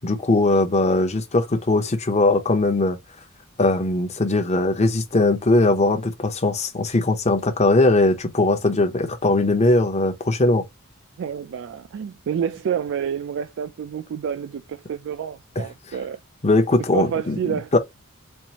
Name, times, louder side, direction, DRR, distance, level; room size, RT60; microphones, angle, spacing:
voice 1, 0.0-3.0 3.6-10.6 15.6-15.7 16.4-17.4 17.7-17.8, left 2 dB, 30° left, 0.8 m, -20 dB
voice 2, 11.2-16.2 16.9-17.7, right 8 dB, 60° right, 0.3 m, -28 dB
4.5 x 2.5 x 2.9 m
head